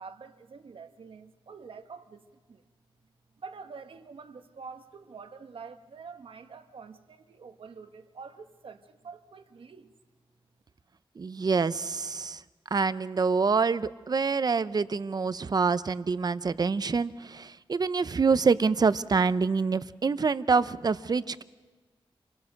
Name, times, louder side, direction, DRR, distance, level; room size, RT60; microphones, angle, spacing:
voice 1, 0.0-2.6 3.4-9.9, right 5 dB, 70° right, 1.2 m, -46 dB
voice 2, 11.2-12.4 12.7-21.4, right 5 dB, 45° right, 0.6 m, -26 dB
27.0 x 18.5 x 6.5 m
wide cardioid pair, 110°, 9 cm